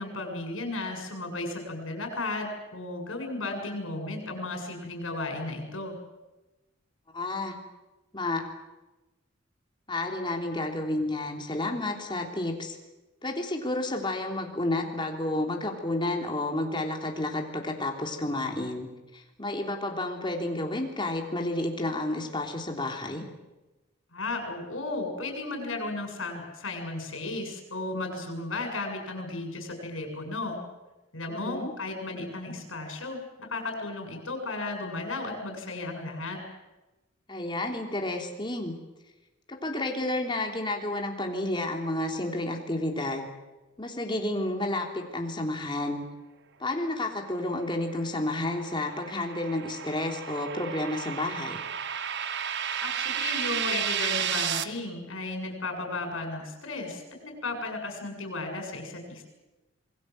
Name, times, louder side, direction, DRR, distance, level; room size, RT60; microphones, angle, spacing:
voice 1, 0.0-6.0 24.1-30.6 31.1-36.4 52.8-59.2, left 2 dB, 90° left, 4 dB, 7.6 m, -34 dB
voice 2, 7.1-7.5 8.1-8.4 9.9-12.7 13.2-18.9 19.1-23.2 31.3-31.7 37.3-38.7 39.6-43.3 43.8-46.0 46.6-51.6, left 2 dB, 25° left, 2 dB, 3.4 m, -31 dB
sound 1, 47.8-54.6, right 8 dB, 60° right, 1.4 m, -32 dB
27.5 x 21.0 x 7.9 m, 1.1 s
head